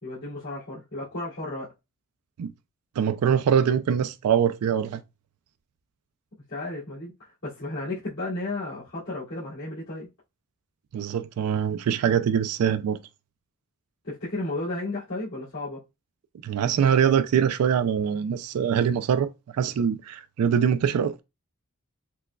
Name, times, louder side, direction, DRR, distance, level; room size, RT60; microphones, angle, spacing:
voice 1, 0.0-1.7 6.5-10.1 14.0-15.8, left 2 dB, 70° left, 2.2 m, -33 dB
voice 2, 3.0-5.0 10.9-13.0 16.4-21.2, right 8 dB, 85° right, 0.3 m, -23 dB
6.0 x 2.2 x 2.2 m
head